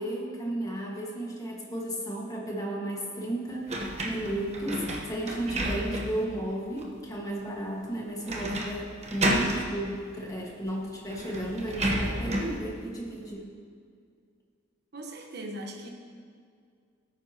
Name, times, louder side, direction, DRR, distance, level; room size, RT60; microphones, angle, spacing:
voice 1, 0.0-13.5, right 1 dB, 20° left, -2 dB, 1.7 m, -34 dB
sound 1, 3.7-6.3 6.8-6.9 8.3-8.8 9.0-9.7 10.7-10.8 11.1-12.6, right 1 dB, 35° right, 1.1 m, -30 dB
voice 2, 14.9-15.9, right 1 dB, 55° right, 2 dB, 1.2 m, -39 dB
17.0 x 9.4 x 3.0 m, 2.2 s
head